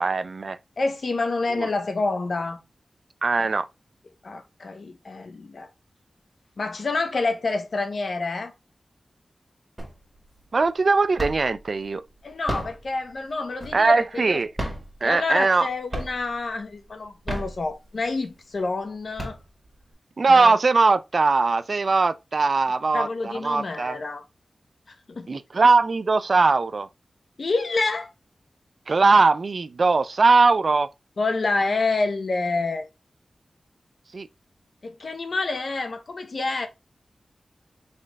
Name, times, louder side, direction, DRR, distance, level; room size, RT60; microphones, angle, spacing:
voice 1, 0.0-0.6 1.5-1.7 3.2-3.7 10.5-12.0 13.7-14.5 15.0-15.7 20.2-24.0 25.3-26.9 28.9-30.9 34.1-34.3, right 3 dB, 55° right, 0.4 m, -20 dB
voice 2, 0.8-2.6 4.2-5.7 6.6-8.5 12.2-14.4 15.0-19.4 20.3-20.5 22.9-24.2 25.1-25.3 27.4-28.1 31.2-32.9 34.8-36.7, left 3 dB, 60° left, 0.9 m, -27 dB
sound 1, 9.8-10.3 10.6-11.6 12.3-14.0 14.5-15.6 15.9-16.5 17.1-18.1 18.6-18.7 19.0-19.9, right 1 dB, 10° right, 2.0 m, -33 dB
4.2 x 3.2 x 3.4 m
wide cardioid pair, 105°, 0 cm